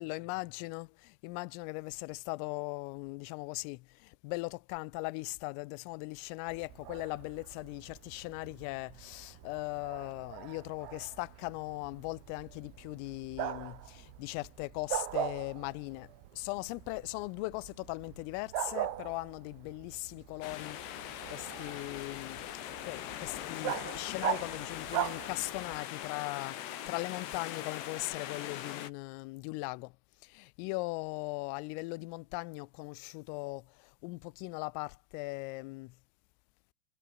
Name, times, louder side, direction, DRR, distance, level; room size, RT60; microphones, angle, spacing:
voice 1, 0.0-29.9 30.2-35.9, left 25 dB, 85° left, 3.2 m, -39 dB
Bark, 6.5-25.9, right 12 dB, 85° right, 4.8 m, -41 dB
sound 1, 20.4-28.9, left 11 dB, 60° left, 3.7 m, -41 dB
omnidirectional pair, 5.9 m